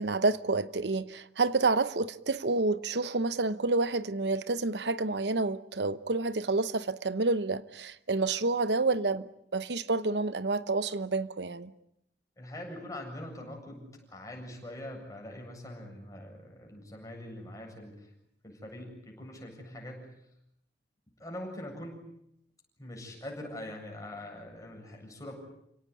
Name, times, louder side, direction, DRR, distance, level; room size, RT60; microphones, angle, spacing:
voice 1, 0.0-9.3 9.5-11.7, right 3 dB, 75° right, 0.9 m, -29 dB
voice 2, 12.4-18.1 18.4-20.1 21.2-22.1 22.8-25.4, left 1 dB, 20° left, 7.8 m, -43 dB
29.5 x 18.0 x 9.8 m
head